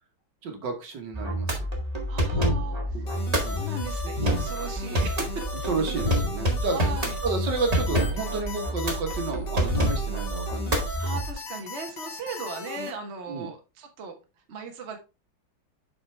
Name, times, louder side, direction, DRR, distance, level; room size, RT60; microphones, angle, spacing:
voice 1, 0.4-1.6 2.9-3.6 5.6-6.8 7.2-11.2 13.3-13.5, right 3 dB, 65° right, 4 dB, 1.9 m, -31 dB
sound 1, 1.1-11.3, right 1 dB, 20° right, 1.7 m, -27 dB
voice 2, 2.1-3.0 3.4-5.4 6.7-7.2 11.0-14.2 14.5-15.0, right 5 dB, 40° right, 3 dB, 1.2 m, -37 dB
sound 2, 3.1-12.9, left 4 dB, 65° left, 2.1 m, -38 dB
7.8 x 5.3 x 3.3 m, 0.30 s
omnidirectional pair, 2.1 m